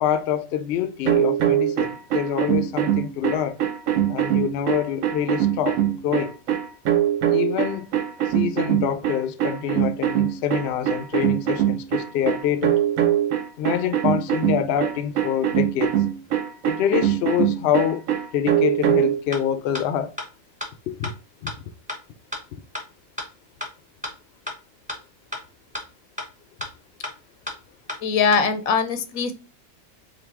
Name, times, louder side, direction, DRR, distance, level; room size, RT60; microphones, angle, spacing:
voice 1, 0.0-3.6 4.1-6.4 7.3-7.9 8.3-12.8 13.6-16.0 16.7-18.0 18.3-20.1 20.9-21.1 21.4-21.5, left 9 dB, 65° left, 0.6 m, -26 dB
sound 1, 1.1-19.2, right 11 dB, 80° right, 1.1 m, -22 dB
sound 2, 19.3-19.4 19.7-19.8 20.2-20.3 20.6-20.7 21.0-21.1 21.5-21.6 21.9-22.0 22.3-22.4 22.7-22.8 23.2-23.3 23.6-23.7 24.0-24.1 24.5-24.6 24.9-25.0 25.3-25.4 25.7-25.8 26.2-26.3 26.6-26.7 27.0-27.1 27.5-27.6 27.9-28.0 28.3-28.4, left 2 dB, 5° right, 0.8 m, -31 dB
voice 2, 28.0-29.3, left 5 dB, 85° left, 1.0 m, -21 dB
3.9 x 2.7 x 3.4 m
omnidirectional pair, 1.4 m